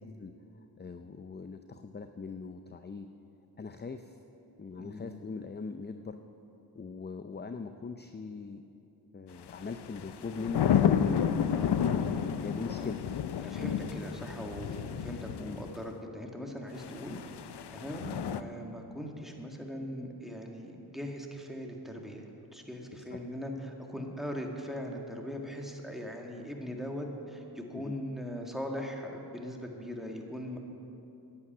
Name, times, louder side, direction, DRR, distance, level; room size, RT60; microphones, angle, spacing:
voice 1, 0.2-3.1 3.6-4.2 4.6-6.2 6.7-8.6 9.1-11.0 11.9-13.1 15.4-15.6 23.1-23.2 27.7-28.0, left 4 dB, 25° left, 8 dB, 0.5 m, -41 dB
voice 2, 4.8-5.1 11.5-12.3 13.4-17.2 17.5-30.6, equal, ahead, 1 dB, 1.8 m, -40 dB
sound 1, 9.5-15.8 16.8-18.4, left 8 dB, 65° left, 0.6 m, -30 dB
11.0 x 8.8 x 8.7 m, 2.8 s
cardioid pair, 60°, 43 cm